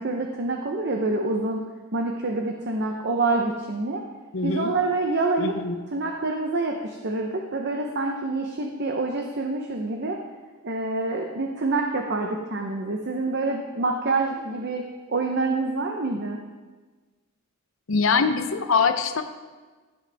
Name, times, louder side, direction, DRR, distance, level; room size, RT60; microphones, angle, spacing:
voice 1, 0.0-1.6 1.9-4.0 4.4-5.5 5.9-10.2 10.6-14.8 15.1-16.4, right 3 dB, 50° right, 2 dB, 0.7 m, -26 dB
voice 2, 4.3-4.7 5.4-5.8 17.9-19.2, left 5 dB, 60° left, 9 dB, 0.7 m, -23 dB
15.5 x 7.6 x 3.4 m, 1.3 s
head